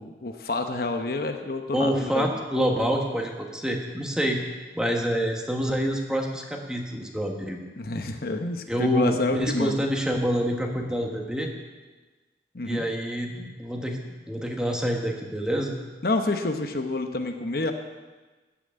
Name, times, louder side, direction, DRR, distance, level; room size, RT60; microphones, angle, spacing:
voice 1, 0.0-2.4 7.8-9.8 12.5-12.9 16.0-17.7, left 2 dB, 55° left, 6 dB, 0.9 m, -28 dB
voice 2, 1.7-4.4 4.7-7.6 8.7-11.5 12.6-15.8, equal, 5° right, 1 dB, 1.3 m, -27 dB
14.0 x 6.1 x 8.6 m, 1.3 s
head